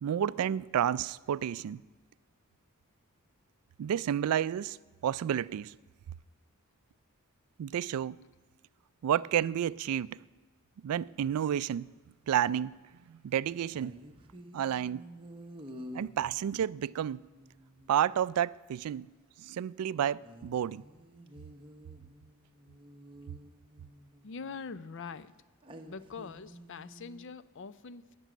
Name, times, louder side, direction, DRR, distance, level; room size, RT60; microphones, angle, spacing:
voice 1, 0.0-1.8 3.8-4.8 5.0-5.7 7.6-8.2 9.0-10.2 10.8-11.9 12.3-12.7 13.1-14.0 14.5-15.0 15.9-17.2 17.9-19.1 19.4-20.8, right 9 dB, 80° right, 0.3 m, -30 dB
sound 1, 13.7-18.0 20.2-24.8 25.6-27.2, equal, 25° right, 1.0 m, -51 dB
voice 2, 24.2-25.3 25.9-28.2, left 5 dB, 55° left, 0.5 m, -43 dB
16.5 x 6.2 x 9.3 m
head